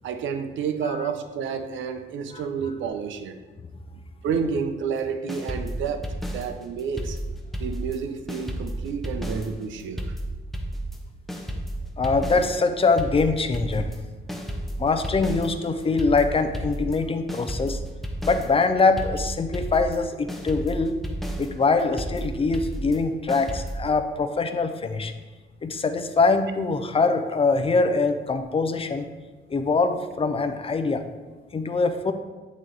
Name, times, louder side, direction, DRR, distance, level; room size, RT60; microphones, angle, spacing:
voice 1, 0.0-3.4 4.2-7.2 7.6-10.1, right 6 dB, 75° right, 8 dB, 0.6 m, -30 dB
sound 1, 5.3-8.0 8.3-23.9, right 1 dB, ahead, 0.7 m, -32 dB
voice 2, 12.0-13.9 14.8-17.8 18.2-21.0 21.4-25.1 25.6-29.1 29.5-31.0 31.5-32.1, left 4 dB, 30° left, 8 dB, 0.5 m, -23 dB
8.9 x 3.1 x 3.9 m, 1.3 s
cardioid pair, 90°, 20 cm